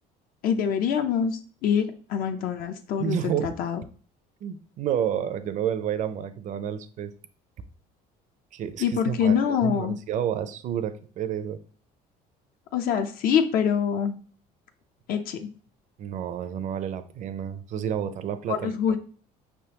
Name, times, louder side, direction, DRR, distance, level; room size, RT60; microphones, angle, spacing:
voice 1, 0.4-3.8 8.8-10.0 12.7-14.1 15.1-15.5 18.5-19.0, left 7 dB, 60° left, 7 dB, 0.5 m, -25 dB
voice 2, 3.0-3.5 4.4-7.1 8.5-11.6 16.0-19.0, right 9 dB, 50° right, 11 dB, 0.5 m, -30 dB
5.3 x 3.4 x 2.9 m, 0.43 s
cardioid pair, 130°, 17 cm